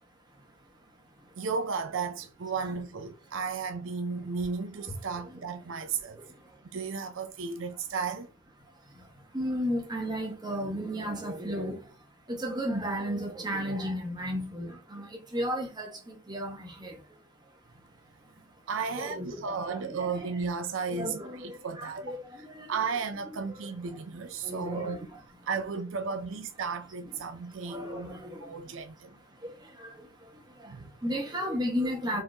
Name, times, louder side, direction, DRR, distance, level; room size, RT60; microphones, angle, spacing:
voice 1, 1.4-6.2 6.7-8.3 18.7-22.1 22.3-25.0 25.4-28.1 28.4-29.1 30.7-30.9, right 5 dB, 65° right, 0.5 m, -34 dB
voice 2, 6.1-6.6 8.9-9.1 9.3-11.9 12.3-17.2 18.7-20.3 20.9-22.8 23.6-23.7 24.4-25.2 27.6-28.5 29.4-32.2, equal, 20° right, 1.3 m, -34 dB
4.5 x 2.9 x 3.6 m
head